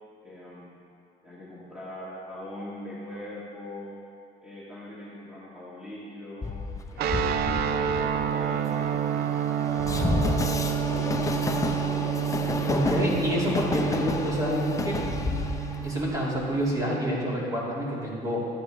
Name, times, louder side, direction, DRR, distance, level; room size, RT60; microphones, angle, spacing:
voice 1, 0.2-0.9 1.2-4.0 4.4-6.6 6.9-9.2 9.7-12.2 12.6-14.1, left 1 dB, 5° right, -9 dB, 1.7 m, -41 dB
Train, 6.4-16.8, left 3 dB, 20° left, 0.6 m, -31 dB
sound 1, 7.0-17.3, right 9 dB, 70° right, 0.5 m, -29 dB
voice 2, 12.7-15.0 15.8-18.5, equal, 20° right, -5 dB, 2.4 m, -28 dB
12.0 x 8.7 x 3.3 m, 2.4 s
cardioid pair, 110°, 17 cm